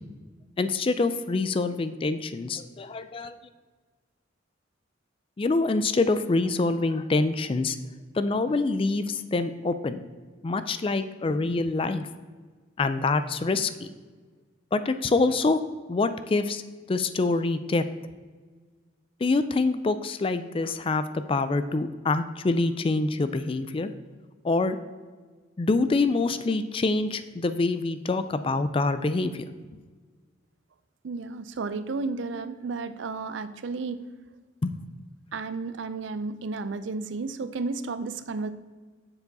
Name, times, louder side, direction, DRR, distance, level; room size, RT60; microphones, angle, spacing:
voice 1, 0.6-3.4 5.4-7.8 8.1-10.0 10.4-12.1 12.8-13.9 14.7-15.6 15.9-16.6 16.9-17.8 19.2-23.9 24.4-24.8 25.6-29.4 34.6-34.8, left 3 dB, 30° left, 11 dB, 0.3 m, -25 dB
voice 2, 31.0-34.0 35.3-38.5, right 4 dB, 75° right, 12 dB, 0.5 m, -32 dB
6.9 x 6.8 x 4.1 m, 1.4 s
head